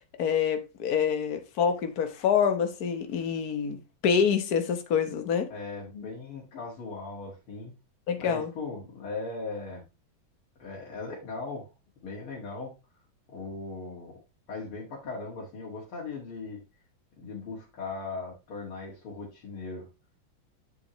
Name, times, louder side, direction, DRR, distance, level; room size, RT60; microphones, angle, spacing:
voice 1, 0.2-5.5 8.1-8.5, left 7 dB, 50° left, 1.5 m, -26 dB
voice 2, 5.5-7.7 8.2-9.8 10.6-11.7 12.0-12.7 13.3-14.2 14.5-16.6 17.2-19.9, left 3 dB, 90° left, 2.9 m, -38 dB
8.6 x 7.3 x 3.1 m
omnidirectional pair, 2.3 m